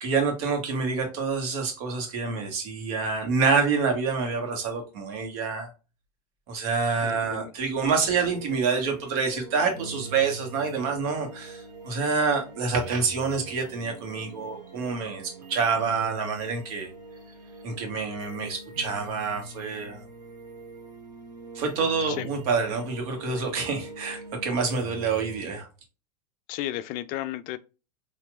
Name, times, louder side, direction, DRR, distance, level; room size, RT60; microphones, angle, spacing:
voice 1, 0.0-5.7 6.5-16.9 17.6-20.0 21.5-25.7, right 5 dB, 55° right, 1.6 m, -27 dB
voice 2, 7.0-7.5 22.1-22.3 26.5-27.6, left 14 dB, 40° left, 0.4 m, -33 dB
sound 1, 7.9-25.4, right 3 dB, 90° right, 0.9 m, -43 dB
4.4 x 2.9 x 2.4 m
hypercardioid pair, 90°, 21 cm